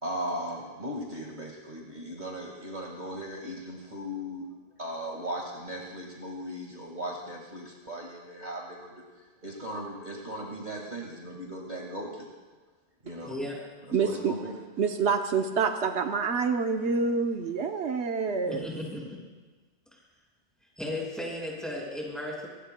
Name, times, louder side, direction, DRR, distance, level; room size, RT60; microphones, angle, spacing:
voice 1, 0.0-4.5 4.8-9.0 9.4-12.3 13.0-13.3 13.8-14.6, equal, 40° right, -2 dB, 1.9 m, -37 dB
voice 2, 13.3-13.6 18.5-19.2 19.9-20.0 20.8-22.5, left 1 dB, ahead, -4 dB, 5.3 m, -35 dB
voice 3, 13.9-14.3 14.8-18.7, right 5 dB, 80° right, 4 dB, 1.1 m, -27 dB
24.5 x 20.0 x 2.2 m, 1.3 s
omnidirectional pair, 1.1 m